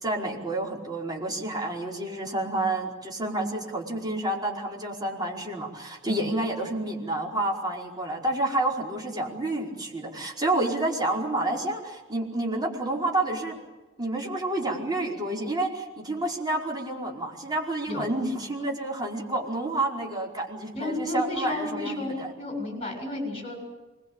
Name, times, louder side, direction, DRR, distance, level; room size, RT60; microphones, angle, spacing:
voice 1, 0.0-13.6 14.0-22.3, right 2 dB, 20° right, -2 dB, 4.9 m, -29 dB
voice 2, 20.7-23.5, left 2 dB, 30° left, 3 dB, 7.1 m, -32 dB
25.5 x 21.0 x 8.8 m, 1.2 s
head